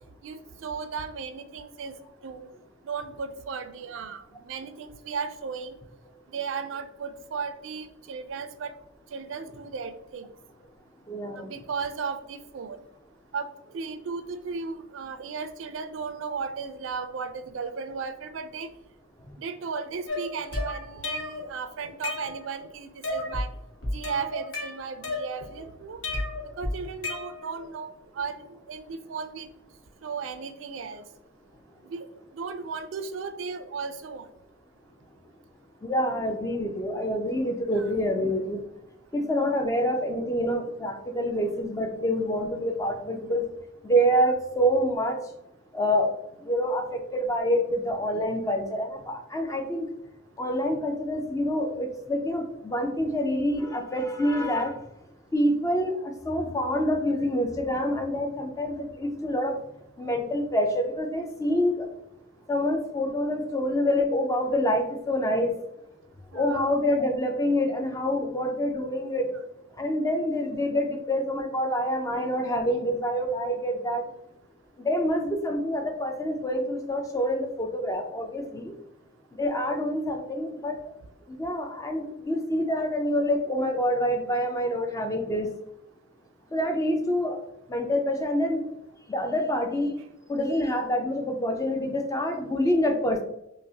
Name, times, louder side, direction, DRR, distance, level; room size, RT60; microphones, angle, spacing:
voice 1, 0.2-1.9 2.2-2.5 2.8-5.7 6.3-8.7 9.1-10.3 11.3-12.8 13.3-18.7 19.4-23.5 23.9-26.0 26.6-29.5 30.0-31.0 31.8-32.1 32.3-34.3 37.7-38.3 66.3-66.7 71.7-71.8 86.5-86.6, right 5 dB, 70° right, 10 dB, 0.4 m, -35 dB
voice 2, 11.1-11.5 35.8-38.6 39.1-43.4 43.8-45.2 45.7-46.1 46.4-49.9 50.4-54.8 55.3-59.6 60.0-61.9 62.5-65.5 66.3-69.3 69.8-74.1 74.8-78.7 79.4-80.8 81.3-85.5 86.5-87.4 87.7-88.6 89.1-89.9 90.3-93.2, equal, 15° left, 4 dB, 0.4 m, -26 dB
sound 1, 20.1-21.5 21.8-22.6 23.0-23.5 23.8-25.6 26.0-27.6, left 2 dB, 70° left, 0.9 m, -32 dB
5.1 x 2.0 x 2.7 m, 0.83 s
head